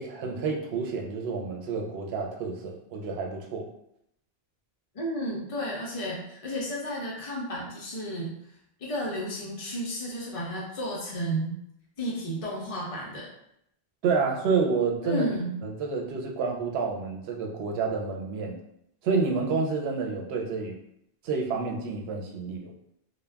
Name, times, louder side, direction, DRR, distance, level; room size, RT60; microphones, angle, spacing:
voice 1, 0.0-3.6 14.0-15.3 15.6-18.6 19.0-20.8 21.2-22.7, right 4 dB, 80° right, 1 dB, 0.8 m, -29 dB
voice 2, 4.9-8.3 8.8-11.5 12.0-13.3 15.0-15.6, equal, 45° left, -3 dB, 0.4 m, -32 dB
2.3 x 2.1 x 3.3 m, 0.77 s
omnidirectional pair, 1.0 m